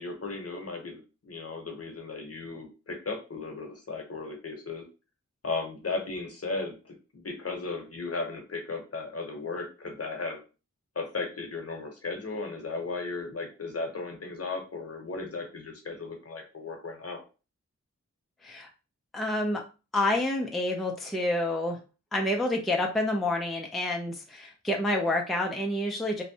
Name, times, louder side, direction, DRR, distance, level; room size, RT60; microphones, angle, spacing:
voice 1, 0.0-4.8 5.4-10.4 11.0-17.2, left 3 dB, 55° left, 3 dB, 0.8 m, -36 dB
voice 2, 19.1-19.6 19.9-21.8 22.1-26.2, left 1 dB, ahead, 2 dB, 0.4 m, -28 dB
2.6 x 2.1 x 2.6 m, 0.32 s
wide cardioid pair, 70°, 29 cm